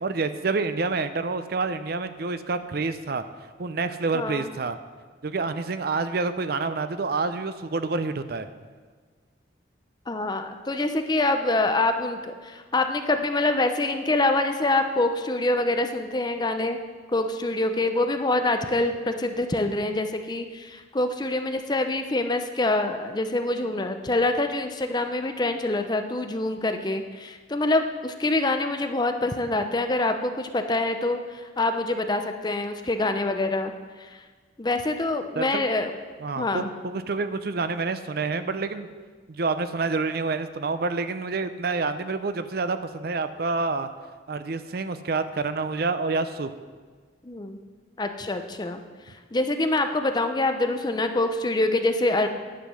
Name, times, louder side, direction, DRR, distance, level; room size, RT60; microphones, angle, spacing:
voice 1, 0.0-3.2 3.6-4.8 5.2-8.5 35.4-35.6 36.2-38.9 39.3-43.9 44.3-46.5, right 3 dB, 55° right, 11 dB, 0.5 m, -28 dB
voice 2, 4.1-4.5 10.1-16.8 17.1-33.7 34.0-34.1 34.6-35.9 36.4-36.7 47.2-47.6 48.0-48.8 49.3-52.3, left 2 dB, 25° left, 6 dB, 0.6 m, -25 dB
10.5 x 7.6 x 6.2 m, 1.5 s
head